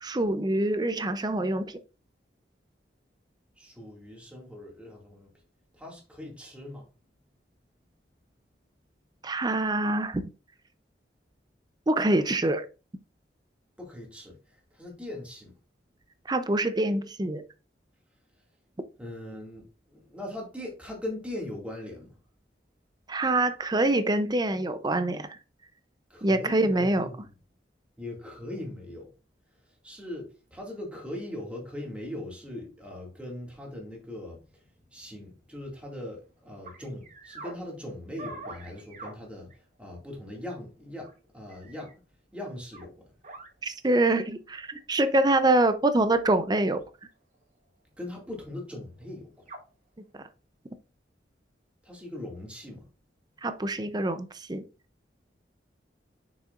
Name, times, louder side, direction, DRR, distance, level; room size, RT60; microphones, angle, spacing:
voice 1, 0.0-1.8 9.2-10.2 11.9-12.7 16.3-17.4 23.1-25.4 26.2-27.1 43.6-46.8 50.2-50.3 53.4-54.6, right 2 dB, 25° right, 0.6 m, -25 dB
voice 2, 3.6-5.3 5.8-6.9 13.8-14.4 14.7-15.5 19.0-19.7 19.9-22.2 26.1-27.2 28.0-29.1 29.8-34.4 34.9-39.5 39.8-41.1 41.3-41.9 42.3-43.0 48.0-49.3 51.8-52.8, left 1 dB, 5° right, 2.2 m, -40 dB
sound 1, 36.6-37.6 38.2-39.1 39.5-39.6 41.0-41.1 41.5-41.9 42.7-42.9 43.2-43.5 45.0-45.1 46.6-46.8 47.3-47.4 49.0-49.1 49.5-49.6, right 2 dB, 45° right, 1.1 m, -44 dB
6.6 x 6.2 x 2.5 m
head